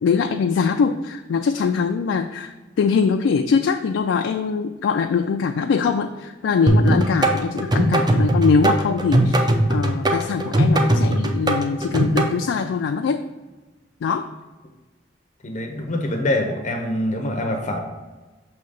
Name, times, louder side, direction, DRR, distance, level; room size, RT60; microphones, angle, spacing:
voice 1, 0.0-13.2 14.0-14.3, left 5 dB, 85° left, 5 dB, 0.3 m, -22 dB
sound 1, 6.7-12.3, right 1 dB, 25° right, 0.5 m, -19 dB
voice 2, 15.4-17.8, left 1 dB, 40° left, 3 dB, 0.6 m, -24 dB
6.4 x 2.8 x 5.1 m, 1.2 s
head